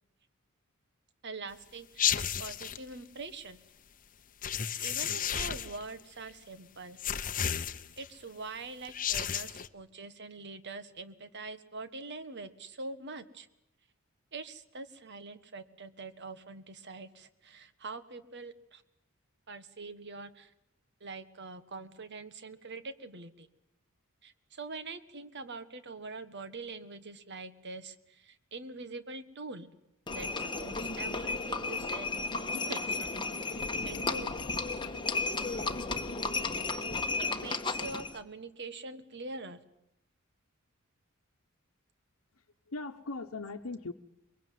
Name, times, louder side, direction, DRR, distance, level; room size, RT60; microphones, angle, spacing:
voice 1, 1.2-3.6 4.8-7.0 8.0-13.5 14.3-18.8 19.5-20.5 21.0-23.5 24.2-29.7 30.1-32.1 32.5-34.3 34.8-34.9 37.4-39.6, right 3 dB, 55° right, 12 dB, 1.5 m, -44 dB
Electric sparks, 2.0-2.8 4.4-5.8 7.0-8.1 8.8-9.7, left 9 dB, 40° left, 0.9 m, -32 dB
Livestock farm animals working animals, 30.1-38.2, left 3 dB, 25° left, 1.4 m, -34 dB
voice 2, 42.3-43.9, left 3 dB, 85° left, 3 dB, 1.0 m, -40 dB
22.5 x 22.5 x 9.3 m, 0.80 s
head